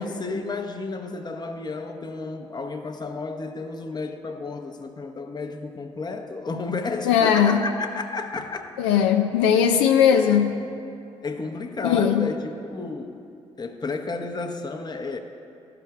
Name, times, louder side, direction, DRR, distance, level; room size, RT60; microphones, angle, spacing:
voice 1, 0.0-8.7 10.1-10.3 11.2-13.2 13.6-15.2, left 3 dB, 30° left, 5 dB, 0.7 m, -32 dB
voice 2, 7.0-7.6 8.8-10.5 11.8-12.3, left 8 dB, 85° left, 4 dB, 0.4 m, -19 dB
12.5 x 5.8 x 2.3 m, 2.5 s
hypercardioid pair, 45°, 14 cm